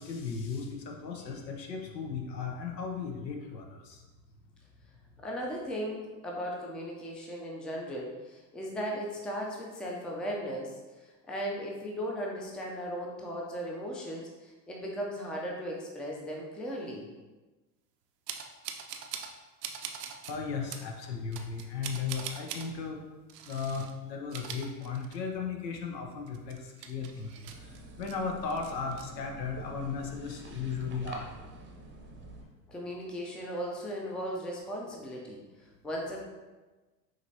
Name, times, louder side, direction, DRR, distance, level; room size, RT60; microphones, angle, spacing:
voice 1, 0.0-4.0 20.3-23.0 23.5-27.5 28.0-31.5, left 5 dB, 85° left, 2 dB, 0.9 m, -36 dB
voice 2, 5.2-17.1 32.7-36.2, equal, ahead, -2 dB, 0.4 m, -37 dB
sound 1, 18.3-19.3 19.6-20.3 20.7-20.9 21.3-22.7 23.3-23.9 24.2-25.4 25.7-25.8 26.3-28.2 28.5-29.0, right 8 dB, 70° right, 0.6 m, -42 dB
sound 2, 27.5-32.4, right 1 dB, 25° right, 0.7 m, -47 dB
5.1 x 3.1 x 2.7 m, 1.2 s
hypercardioid pair, 85°, 49 cm